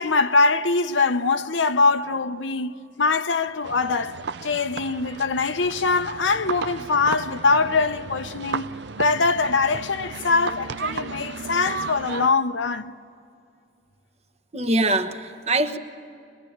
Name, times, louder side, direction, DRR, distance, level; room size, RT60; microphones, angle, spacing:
voice 1, 0.0-2.7 3.0-4.1 4.4-8.7 9.0-12.9, left 4 dB, 80° left, 0.8 m, -22 dB
sound 1, 3.6-12.3, right 5 dB, 65° right, 0.6 m, -34 dB
voice 2, 14.5-15.8, right 2 dB, 35° right, 1.2 m, -23 dB
25.0 x 21.5 x 8.8 m
head